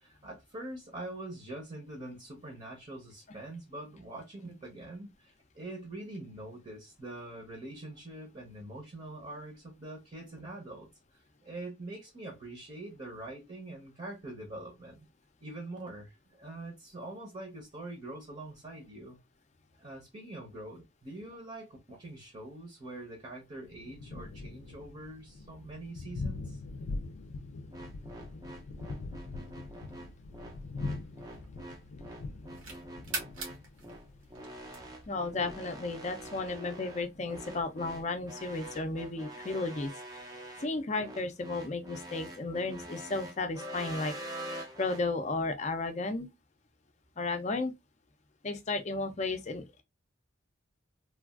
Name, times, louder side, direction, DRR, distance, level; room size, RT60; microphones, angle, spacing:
voice 1, 0.0-10.9 11.1-15.0 15.4-19.2 19.8-26.6, right 2 dB, 35° right, 0.8 m, -44 dB
Thunder, 23.6-38.9, left 3 dB, 90° left, 0.4 m, -43 dB
sound 1, 27.7-45.0, right 1 dB, 20° right, 0.5 m, -45 dB
sound 2, 30.0-31.8 32.2-35.2, right 3 dB, 75° right, 1.3 m, -43 dB
voice 2, 35.1-40.2 40.6-44.1 44.8-46.3 47.2-47.7 48.4-49.8, left 3 dB, 35° left, 0.4 m, -34 dB
3.3 x 2.3 x 2.3 m
head